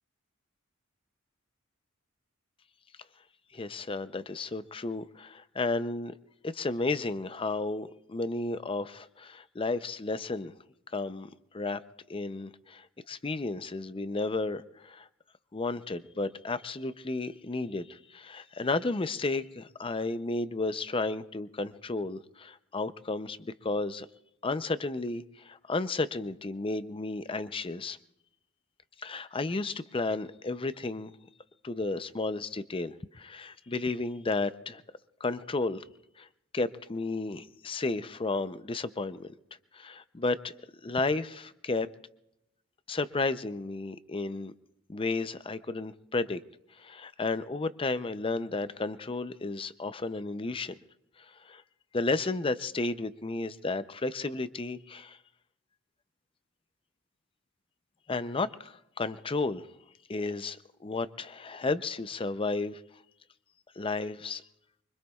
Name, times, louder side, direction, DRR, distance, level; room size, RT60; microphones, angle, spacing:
voice 1, 3.5-6.1 6.4-10.5 10.9-11.8 12.1-15.1 15.5-24.1 24.4-28.0 29.0-31.1 31.6-34.8 35.2-35.8 36.2-36.3 36.5-39.3 39.7-40.5 40.8-41.9 42.9-44.5 44.9-46.4 46.8-50.7 51.2-51.6 51.9-55.2 58.1-59.7 60.1-62.8 63.8-64.4, left 3 dB, 25° left, 13 dB, 0.5 m, -33 dB
24.5 x 24.5 x 2.4 m, 0.84 s
head